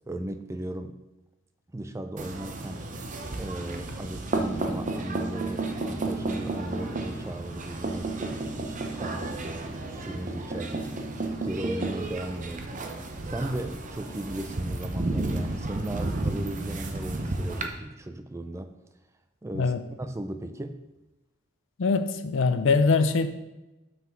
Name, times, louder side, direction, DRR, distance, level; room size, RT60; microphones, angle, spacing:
voice 1, 0.1-1.0 1.7-2.9 3.3-10.9 11.4-12.9 13.2-18.8 19.4-19.7 20.0-20.8, right 1 dB, 15° right, 9 dB, 0.4 m, -36 dB
sound 1, 2.2-17.7, right 2 dB, 40° right, 0.7 m, -32 dB
voice 2, 21.8-23.3, left 4 dB, 65° left, 10 dB, 0.5 m, -22 dB
5.9 x 5.7 x 4.5 m, 1.0 s
head